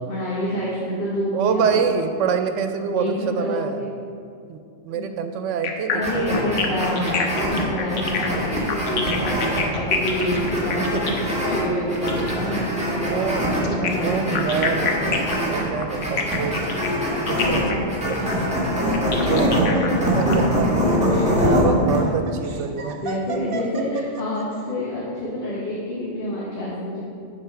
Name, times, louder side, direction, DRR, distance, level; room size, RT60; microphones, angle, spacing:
voice 1, 0.0-1.8 2.4-2.6 2.9-3.9 4.9-5.1 5.9-14.9 18.2-18.4 19.1-21.7 22.7-27.0, equal, 50° left, -6 dB, 1.3 m, -27 dB
voice 2, 1.3-3.9 4.5-6.3 10.9-11.2 11.4-11.6 12.9-13.5 13.8-16.8 17.2-18.3 19.2-19.5 20.1-20.4 21.4-23.0, right 6 dB, 80° right, 8 dB, 0.9 m, -26 dB
sound 1, 5.6-12.4 13.6-20.3, left 6 dB, 80° left, 1.1 m, -28 dB
sound 2, 6.0-22.0, equal, 5° right, 1.7 m, -24 dB
Laughter, 19.7-24.6, right 4 dB, 55° right, 0.8 m, -35 dB
7.5 x 4.3 x 5.7 m, 2.4 s
omnidirectional pair, 1.2 m